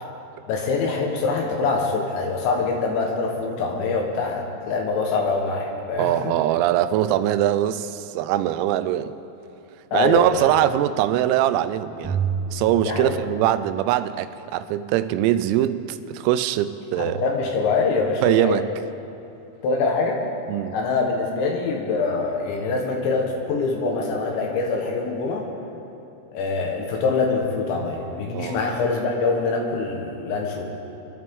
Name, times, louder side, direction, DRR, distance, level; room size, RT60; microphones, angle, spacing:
voice 1, 0.5-6.3 9.9-10.5 12.8-13.2 17.0-18.6 19.6-20.2 20.7-25.4 26.3-30.7, left 4 dB, 70° left, 1 dB, 3.2 m, -24 dB
voice 2, 6.0-9.2 9.9-12.2 12.5-17.2 18.2-18.7 20.5-20.8 28.3-28.6, right 12 dB, 90° right, 12 dB, 3.3 m, -22 dB
sound 1, 12.0-13.8, right 5 dB, ahead, 1.9 m, -29 dB
25.0 x 12.5 x 3.6 m, 2.8 s
omnidirectional pair, 5.9 m